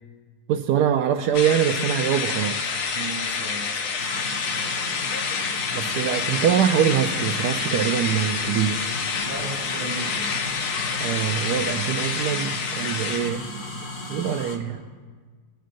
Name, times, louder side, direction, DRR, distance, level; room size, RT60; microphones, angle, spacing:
voice 1, 0.5-2.6 5.7-8.8 11.0-13.4 14.1-14.8, right 9 dB, 80° right, 4 dB, 1.1 m, -23 dB
sound 1, 1.3-13.3, left 5 dB, 70° left, 1.3 m, -28 dB
voice 2, 2.9-3.8 9.2-10.3, right 2 dB, 25° right, -5 dB, 3.7 m, -35 dB
sound 2, 4.0-14.6, left 2 dB, 50° left, 1.5 m, -35 dB
23.5 x 9.1 x 2.6 m, 1.5 s
omnidirectional pair, 1.7 m